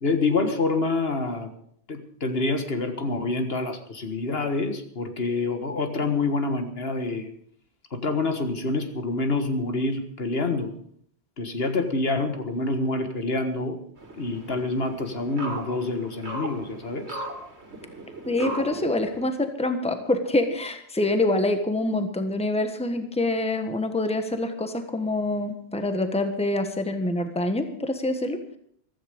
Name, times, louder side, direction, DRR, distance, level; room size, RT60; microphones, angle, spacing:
voice 1, 0.0-1.5 1.9-7.3 7.9-10.7 11.4-13.8 14.2-17.2, left 3 dB, 65° left, 7 dB, 1.8 m, -27 dB
sound 1, 14.0-19.3, right 2 dB, 85° right, 2.4 m, -37 dB
voice 2, 18.3-28.6, left 2 dB, 5° left, 7 dB, 1.3 m, -26 dB
15.0 x 14.0 x 5.1 m, 0.64 s
omnidirectional pair, 1.1 m